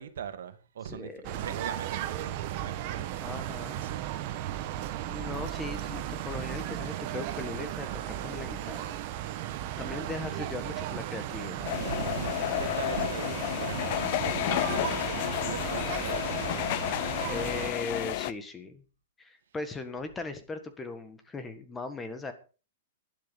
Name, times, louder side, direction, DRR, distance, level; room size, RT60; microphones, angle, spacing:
voice 1, 0.0-3.1 3.7-4.0 11.7-16.5, right 8 dB, 75° right, 2.1 m, -40 dB
voice 2, 0.8-1.4 3.2-3.8 5.0-9.0 9.8-11.7 17.3-18.8 19.2-22.3, left 3 dB, 10° left, 1.6 m, -39 dB
sound 1, 1.2-17.7, right 12 dB, 40° right, 1.5 m, -35 dB
sound 2, 11.6-18.3, left 16 dB, 45° left, 0.7 m, -31 dB
11.5 x 11.5 x 5.4 m
hypercardioid pair, 155°, 0 cm